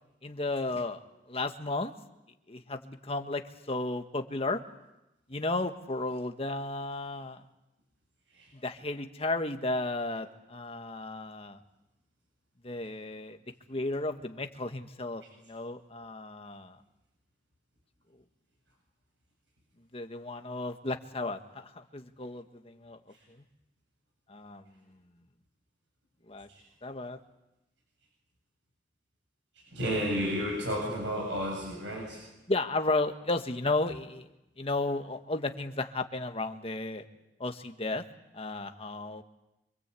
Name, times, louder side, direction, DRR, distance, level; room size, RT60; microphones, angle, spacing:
voice 1, 0.2-1.9 2.5-4.6 5.3-7.4 8.6-11.6 12.6-13.4 13.7-16.8 19.9-23.0 23.3-23.4 24.3-24.6 26.3-26.5 26.8-27.2 32.5-34.3 34.6-37.0 37.4-38.0 38.3-39.2, left 2 dB, 35° left, 6 dB, 1.6 m, -34 dB
voice 2, 29.5-32.3, equal, 85° right, 1 dB, 7.9 m, -32 dB
26.5 x 25.5 x 8.5 m, 0.94 s
head